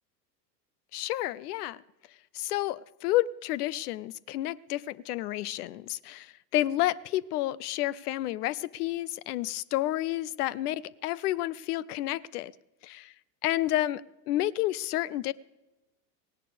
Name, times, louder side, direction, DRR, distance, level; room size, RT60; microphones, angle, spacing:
voice 1, 0.9-1.8 2.3-12.5 12.8-13.1 13.4-14.0 14.3-15.3, left 15 dB, 70° left, 0.5 m, -30 dB
17.5 x 17.0 x 3.4 m
hypercardioid pair, 90°, 49 cm